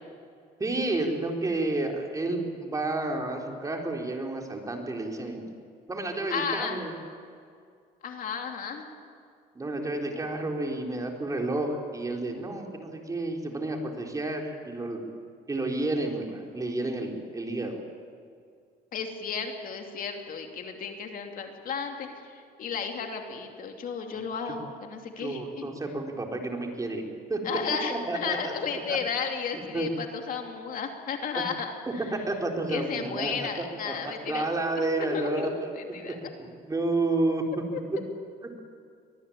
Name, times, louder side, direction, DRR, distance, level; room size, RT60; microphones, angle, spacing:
voice 1, 0.6-5.4 5.9-6.9 9.6-15.0 15.5-17.8 24.5-24.6 25.2-27.0 27.3-27.4 27.9-28.5 28.9-29.0 29.7-29.9 31.3-31.4 32.1-33.5 33.9-35.5 36.0-36.1 36.6-37.4, right 2 dB, 20° right, 2 dB, 3.8 m, -30 dB
voice 2, 6.3-6.8 8.0-8.8 18.9-25.7 27.4-32.2 32.7-34.5 34.8-36.3 37.7-37.8, left 6 dB, 55° left, 4 dB, 2.9 m, -34 dB
23.5 x 19.5 x 8.7 m, 2.2 s
cardioid pair, 110°, 17 cm